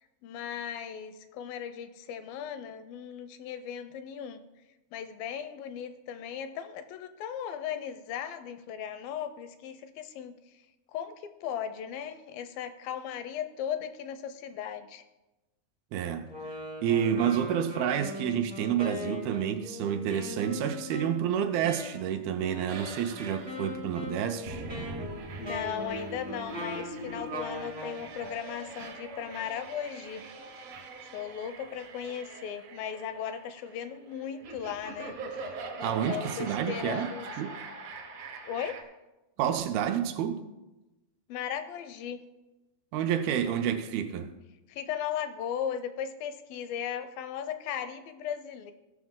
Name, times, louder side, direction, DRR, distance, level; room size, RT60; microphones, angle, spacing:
voice 1, 0.2-4.4 4.9-10.3 10.9-15.0 25.4-30.3 30.6-30.7 31.1-35.5 35.8-37.3 38.4-38.8 41.3-42.2 44.7-48.7, left 8 dB, 80° left, 2.2 m, -37 dB
voice 2, 15.9-16.3 16.8-24.6 35.8-37.1 37.4-37.6 39.4-40.4 42.9-44.3, right 9 dB, 85° right, 2.5 m, -29 dB
Wind instrument woodwind instrument, 16.3-28.0, left 2 dB, 35° right, 0.4 m, -40 dB
sound 1, 22.7-38.8, right 3 dB, 65° right, 1.6 m, -43 dB
17.0 x 6.2 x 3.7 m
omnidirectional pair, 4.4 m